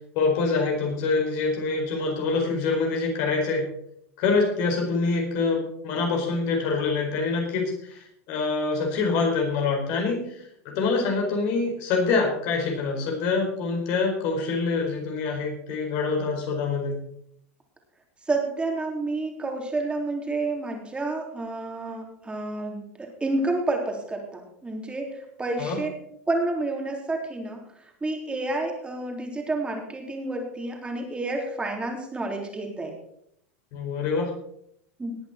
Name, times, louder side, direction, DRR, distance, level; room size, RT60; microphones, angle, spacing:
voice 1, 0.1-3.6 4.2-17.0 25.6-25.8 33.7-34.3, left 4 dB, 55° left, 1 dB, 4.6 m, -25 dB
voice 2, 18.3-25.9 26.3-33.0 35.0-35.2, right 2 dB, 15° right, 1 dB, 3.7 m, -30 dB
19.0 x 8.5 x 4.4 m, 0.72 s
hypercardioid pair, 110°, 8 cm